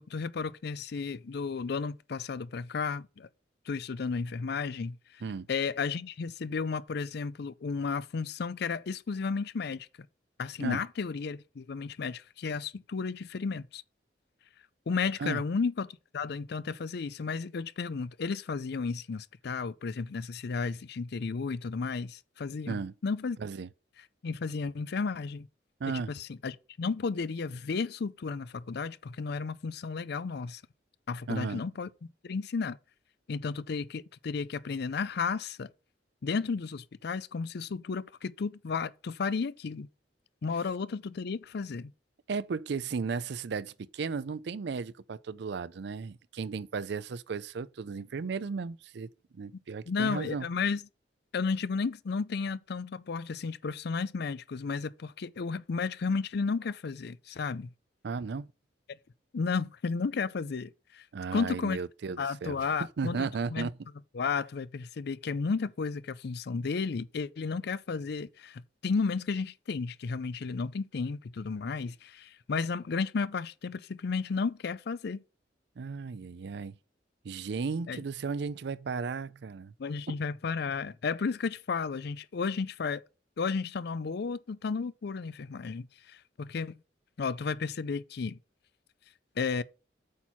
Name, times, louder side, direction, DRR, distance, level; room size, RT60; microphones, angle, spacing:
voice 1, 0.0-3.3 3.7-5.0 5.5-9.9 10.4-13.8 14.9-23.4 24.2-25.5 25.9-30.6 31.1-32.8 33.3-35.7 36.2-39.9 40.4-41.9 49.9-50.8 51.3-57.7 59.3-61.0 61.3-61.8 62.2-63.7 64.1-75.2 77.9-78.0 79.8-83.0 83.4-86.8 87.2-88.4 89.4-89.6, left 5 dB, 60° left, 0.5 m, -33 dB
voice 2, 23.4-23.7 25.8-26.1 31.3-31.6 42.3-49.1 49.3-50.5 58.0-58.5 61.1-62.7 63.0-63.7 75.8-76.7 77.2-79.7 80.1-80.2, right 5 dB, 65° right, 0.4 m, -35 dB
8.4 x 4.5 x 5.6 m
head